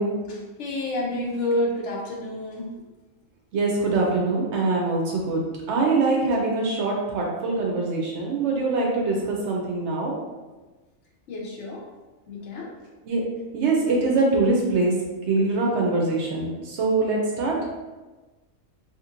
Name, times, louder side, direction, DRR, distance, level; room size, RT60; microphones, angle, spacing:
voice 1, 0.3-2.7 11.3-11.8 12.3-12.7, left 1 dB, 65° left, -2 dB, 0.8 m, -29 dB
voice 2, 3.5-5.4 5.7-10.1 13.1-13.2 13.5-14.9 15.3-17.5, right 3 dB, 65° right, -1 dB, 0.8 m, -23 dB
2.9 x 2.8 x 2.5 m, 1.2 s
omnidirectional pair, 1.4 m